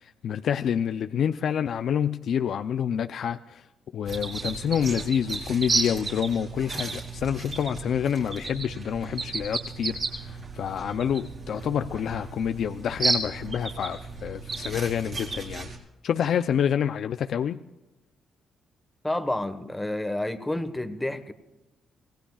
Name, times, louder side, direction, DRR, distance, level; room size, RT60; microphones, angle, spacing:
voice 1, 0.0-3.7 3.9-15.7 16.0-17.6, left 8 dB, 65° left, 9 dB, 0.5 m, -28 dB
sound 1, 4.1-15.8, right 3 dB, 40° right, 4.6 m, -33 dB
voice 2, 19.0-21.3, left 1 dB, 10° left, 9 dB, 1.3 m, -29 dB
26.5 x 18.5 x 2.4 m, 0.99 s
cardioid pair, 115°, 0 cm